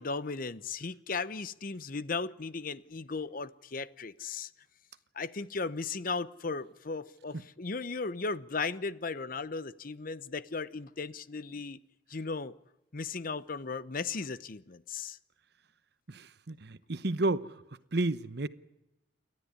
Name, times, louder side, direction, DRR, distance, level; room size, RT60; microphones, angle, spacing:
voice 1, 0.0-4.5 5.1-11.8 12.1-12.6 12.9-15.2, left 4 dB, 45° left, 0.8 m, -36 dB
voice 2, 16.1-17.6 17.9-18.5, right 2 dB, 60° right, 0.9 m, -31 dB
29.0 x 13.0 x 9.6 m
head